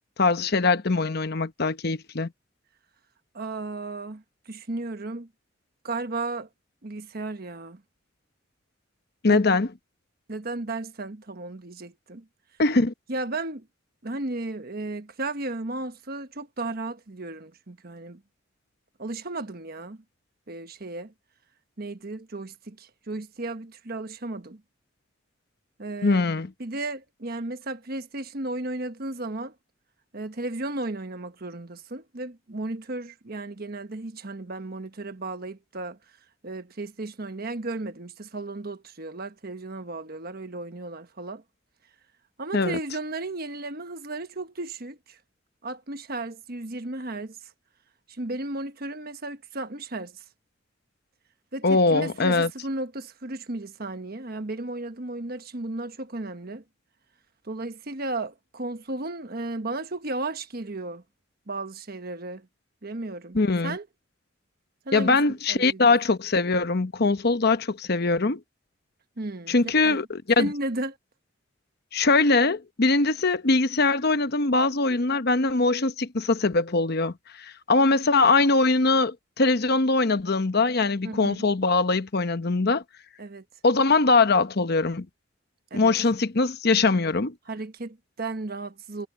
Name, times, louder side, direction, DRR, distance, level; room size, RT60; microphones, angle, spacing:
voice 1, 0.2-2.3 9.2-9.7 12.6-12.9 26.0-26.5 42.5-42.8 51.6-52.5 63.3-63.8 64.9-68.4 69.5-70.5 71.9-82.8 83.6-85.1 85.7-87.3, left 3 dB, 55° left, 1.0 m, -22 dB
voice 2, 3.3-5.3 5.8-6.5 6.8-7.8 9.3-9.4 10.3-12.2 13.1-13.7 14.0-18.2 19.0-20.0 20.5-21.1 21.8-24.6 25.8-26.3 26.6-29.5 30.1-36.0 36.4-41.4 42.4-45.2 45.6-47.4 48.1-50.2 51.5-56.6 57.4-61.0 61.5-62.5 62.8-63.4 63.6-63.9 64.8-65.2 65.5-66.0 69.2-70.0 70.4-71.0 81.0-81.4 83.2-83.4 85.7-85.9 87.5-89.1, right 2 dB, 50° right, 1.3 m, -34 dB
head